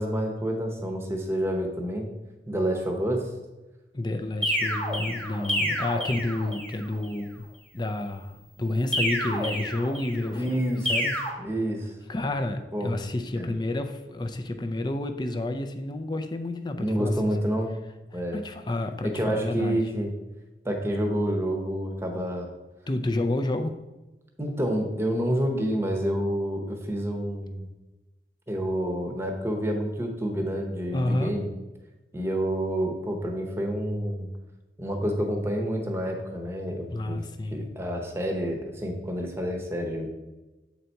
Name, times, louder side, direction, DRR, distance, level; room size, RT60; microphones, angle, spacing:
voice 1, 0.0-2.1 2.5-3.2 10.3-10.9 11.4-11.9 12.7-13.0 13.4-13.5 16.8-17.7 18.1-18.4 19.0-20.1 20.6-22.5 24.4-27.7 28.5-31.5 32.1-34.3 34.8-37.2 37.5-40.1, equal, 15° right, 2 dB, 0.9 m, -28 dB
voice 2, 3.9-7.5 7.7-10.6 10.9-11.1 12.1-17.4 18.1-19.9 22.9-23.8 30.9-31.4 36.9-37.7, left 2 dB, 25° left, 6 dB, 0.5 m, -30 dB
sound 1, 4.4-6.8 8.9-10.3 10.8-11.3, equal, 10° left, 1.3 m, -29 dB
7.7 x 4.1 x 4.5 m, 1.1 s
head